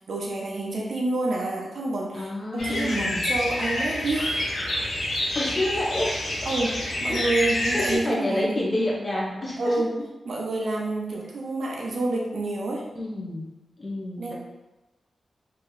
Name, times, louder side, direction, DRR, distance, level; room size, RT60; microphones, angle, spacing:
voice 1, 0.1-4.5 6.4-8.5 9.6-12.9 14.2-14.3, right 2 dB, 70° right, -2 dB, 0.5 m, -28 dB
voice 2, 2.1-3.2 5.3-6.4 7.1-7.2 7.7-9.7 12.9-13.5 13.8-14.3, left 1 dB, 30° left, -4 dB, 0.9 m, -28 dB
sound 1, 2.6-8.0, left 1 dB, 70° left, 0.9 m, -28 dB
3.1 x 2.7 x 3.9 m, 1.1 s
wide cardioid pair, 160°, 0 cm